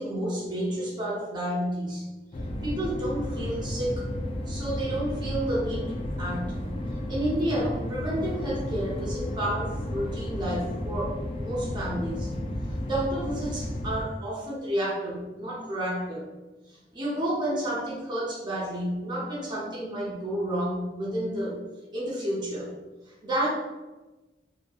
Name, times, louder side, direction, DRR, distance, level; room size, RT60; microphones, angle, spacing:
voice 1, 0.0-2.1 2.6-4.1 4.5-6.6 7.1-12.3 12.8-16.2 16.9-21.6 21.9-22.7 23.2-23.5, right 1 dB, 25° right, -5 dB, 0.6 m, -30 dB
sound 1, 2.3-14.0, left 1 dB, 35° left, 0.3 m, -33 dB
2.7 x 2.6 x 2.3 m, 1.1 s
head